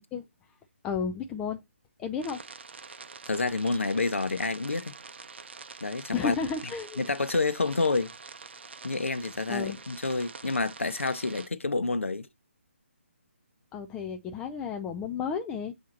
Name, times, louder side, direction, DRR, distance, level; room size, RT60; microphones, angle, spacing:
voice 1, 0.8-1.6 2.0-2.4 6.1-7.0 9.5-9.8 13.7-15.7, left 6 dB, 10° left, 0.4 m, -32 dB
sound 1, 2.2-11.5, right 5 dB, 55° right, 0.7 m, -46 dB
voice 2, 3.2-4.9 5.8-6.4 7.0-8.1 8.8-12.3, left 3 dB, 75° left, 0.9 m, -28 dB
8.1 x 2.8 x 4.3 m
figure-of-eight pair, 145°, 7 cm